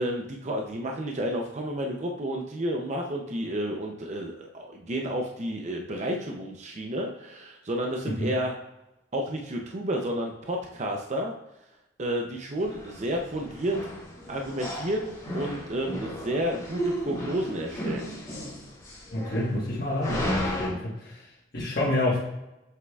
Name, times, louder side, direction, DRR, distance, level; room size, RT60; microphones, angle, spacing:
voice 1, 0.0-8.5 9.1-11.3 12.0-13.9 14.3-18.1, equal, 40° right, 1 dB, 0.6 m, -31 dB
sound 1, 12.6-20.7, equal, 20° left, 2.2 m, -35 dB
voice 2, 19.1-22.2, left 1 dB, 60° left, -6 dB, 1.3 m, -28 dB
7.5 x 6.4 x 2.4 m, 0.96 s
head